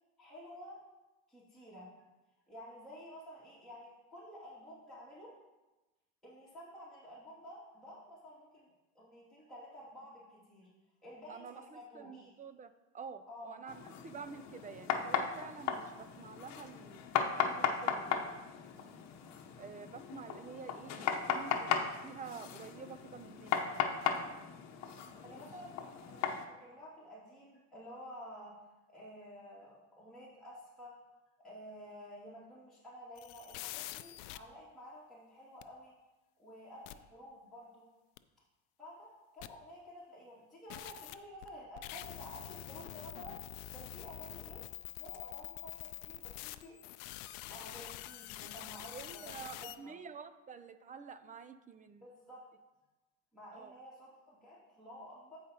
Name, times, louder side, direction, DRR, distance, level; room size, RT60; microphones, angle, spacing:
voice 1, 0.2-0.8 1.3-1.9 2.5-5.3 6.2-10.7 11.0-12.3 13.3-13.6 25.0-28.5 28.9-31.0 31.4-35.9 36.4-37.9 38.8-43.3 43.7-44.6 45.0-46.7 47.4-49.9 52.0-52.4 53.3-55.4, equal, ahead, -10 dB, 2.4 m, -51 dB
voice 2, 11.3-18.2 19.6-23.6 48.9-52.1 53.5-53.7, right 6 dB, 20° right, 11 dB, 0.5 m, -49 dB
sound 1, 13.7-26.4, left 7 dB, 50° left, 1.0 m, -37 dB
sound 2, 33.2-34.4 35.6-35.7 36.9-37.0 38.2-38.3 39.4-39.5 40.7-49.8, left 16 dB, 65° left, 0.5 m, -46 dB
14.0 x 4.9 x 2.9 m, 1.1 s
hypercardioid pair, 85°, 36 cm